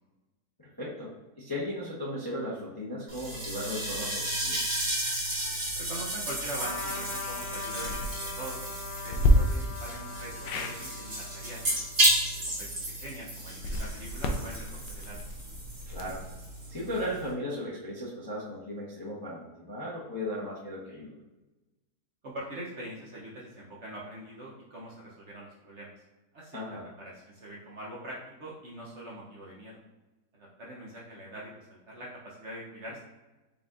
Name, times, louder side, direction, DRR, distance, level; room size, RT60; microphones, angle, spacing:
voice 1, 0.6-4.6 15.9-16.2 16.7-21.2 26.5-26.9, left 1 dB, 20° left, -7 dB, 0.6 m, -36 dB
sound 1, 3.1-17.3, right 1 dB, 40° right, 1.4 m, -33 dB
voice 2, 5.8-8.6 9.0-11.6 12.6-15.2 22.2-25.9 26.3-26.8 27.0-29.8 30.3-33.0, right 1 dB, 55° right, -4 dB, 0.9 m, -43 dB
Trumpet, 6.5-12.4, left 4 dB, 65° left, 1.2 m, -41 dB
sound 2, 7.8-8.1 9.1-9.3 10.4-10.8 13.5-16.3, equal, 85° left, 1.2 m, -29 dB
5.0 x 3.8 x 2.4 m, 1.1 s
omnidirectional pair, 1.8 m